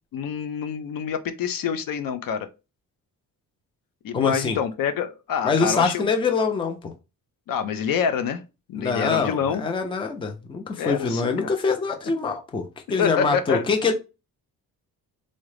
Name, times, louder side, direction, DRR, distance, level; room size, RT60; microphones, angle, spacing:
voice 1, 0.1-2.5 4.0-6.0 7.5-8.4 8.7-9.6 10.8-11.5 13.0-13.6, left 7 dB, 70° left, 0.6 m, -26 dB
voice 2, 4.1-4.6 5.4-6.9 8.7-13.9, left 4 dB, 15° left, 0.4 m, -24 dB
3.6 x 2.1 x 3.1 m
cardioid pair, 150°, 36 cm